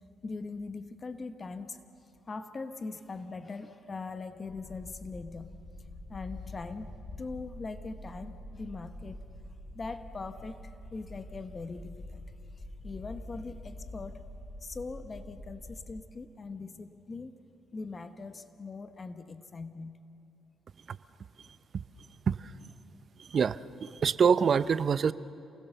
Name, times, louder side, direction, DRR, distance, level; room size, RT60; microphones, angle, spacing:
voice 1, 0.2-9.2 9.7-12.2 12.5-14.2 14.6-17.3 17.7-20.0, left 4 dB, 35° left, 9 dB, 1.1 m, -41 dB
sound 1, 4.5-15.9, equal, 50° left, 6.5 m, -47 dB
voice 2, 23.2-25.1, right 6 dB, 50° right, 16 dB, 0.6 m, -26 dB
28.5 x 19.5 x 6.9 m, 2.8 s
cardioid pair, 90°, 0 cm